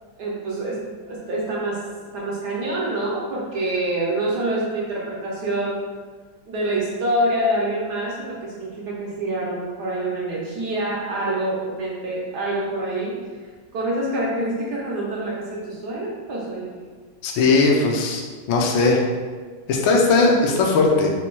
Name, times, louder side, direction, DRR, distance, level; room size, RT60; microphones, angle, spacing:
voice 1, 0.2-0.8 1.1-1.8 2.1-5.8 6.5-13.2 13.7-16.8, right 1 dB, 70° right, -4 dB, 1.0 m, -26 dB
voice 2, 17.2-18.2 18.5-19.0 19.7-21.1, left 3 dB, 75° left, 0 dB, 1.2 m, -18 dB
4.2 x 2.2 x 4.3 m, 1.5 s
omnidirectional pair, 2.3 m